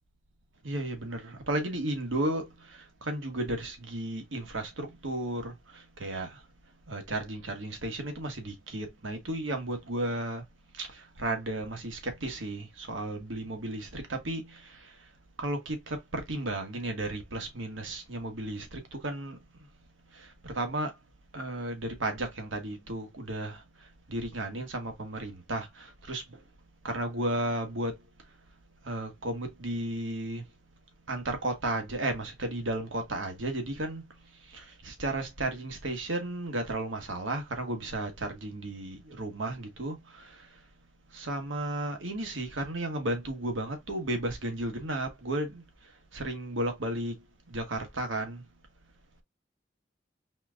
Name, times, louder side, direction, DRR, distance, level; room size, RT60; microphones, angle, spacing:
voice 1, 0.6-6.4 6.9-10.4 10.7-14.9 15.4-19.4 20.1-20.9 21.3-23.6 24.1-26.4 26.8-28.0 28.8-30.4 31.1-34.0 34.5-40.4 41.1-45.6 46.1-47.2 47.5-48.4, right 1 dB, 85° right, 1.4 m, -34 dB
4.4 x 3.7 x 2.4 m
head